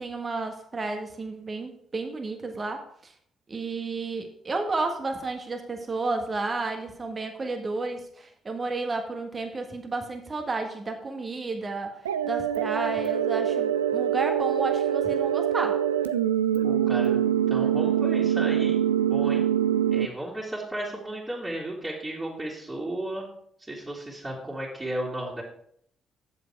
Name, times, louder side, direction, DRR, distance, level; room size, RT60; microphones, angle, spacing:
voice 1, 0.0-3.1 3.5-12.0 12.2-15.8, right 3 dB, 35° right, 4 dB, 1.6 m, -32 dB
sound 1, 12.1-20.1, right 10 dB, 85° right, 0.3 m, -24 dB
voice 2, 16.6-17.2 17.5-18.8 19.1-19.5 19.9-23.3 23.6-25.4, right 1 dB, 15° right, -6 dB, 2.9 m, -34 dB
8.3 x 7.4 x 4.7 m, 0.66 s
figure-of-eight pair, 45°, 0 cm